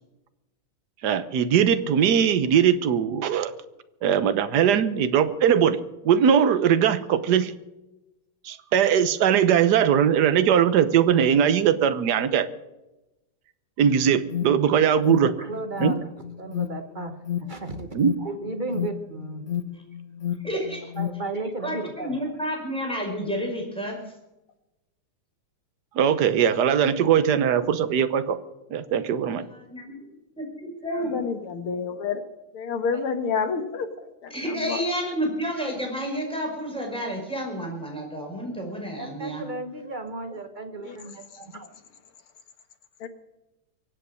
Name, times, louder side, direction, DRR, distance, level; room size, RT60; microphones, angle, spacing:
voice 1, 1.0-3.5 4.0-5.8 6.0-7.5 8.4-12.5 13.8-15.3 15.8-15.9 17.9-18.1 25.9-28.4 28.7-29.4, right 8 dB, 60° right, 12 dB, 1.3 m, -20 dB
Alarm, 13.8-21.3, left 10 dB, 50° left, 1.0 m, -32 dB
voice 2, 15.2-16.1 16.4-17.9 18.2-19.4 20.6-20.7 21.0-22.2 32.9-33.0 38.9-41.7, right 2 dB, 30° right, 7 dB, 0.9 m, -34 dB
voice 3, 20.4-20.9 21.6-24.0 29.5-29.9 30.4-31.2 34.3-39.4, equal, ahead, -1 dB, 5.3 m, -30 dB
voice 4, 31.1-32.2 32.5-33.9 34.2-34.3 34.7-34.8 40.8-41.0 43.0-43.1, left 5 dB, 80° left, 8 dB, 2.4 m, -28 dB
24.0 x 8.4 x 6.4 m, 0.98 s
omnidirectional pair, 2.3 m